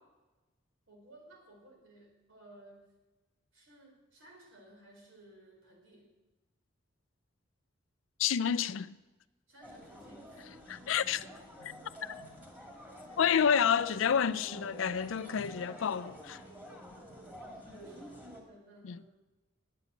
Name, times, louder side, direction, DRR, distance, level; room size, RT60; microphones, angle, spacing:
voice 1, 0.9-2.8 3.5-6.1 9.5-10.5 16.9-19.2, right 1 dB, 80° right, 4.0 m, -58 dB
voice 2, 8.2-9.0 10.7-11.3 12.0-12.1 13.2-16.4 18.8-19.0, left 7 dB, 70° left, 0.4 m, -29 dB
sound 1, 9.6-18.4, equal, 10° right, 2.1 m, -49 dB
9.5 x 9.1 x 7.9 m
head